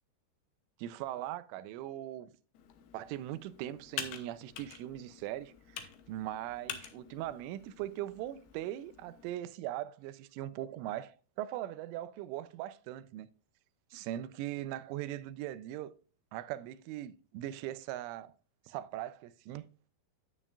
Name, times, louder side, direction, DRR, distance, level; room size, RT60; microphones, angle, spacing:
voice 1, 0.8-2.3 2.9-13.3 13.9-15.9 16.3-18.3 18.7-19.7, right 13 dB, 85° right, 3.0 m, -40 dB
Computer keyboard, 2.5-9.3, left 9 dB, 75° left, 2.3 m, -47 dB
9.8 x 9.1 x 2.3 m
omnidirectional pair, 5.5 m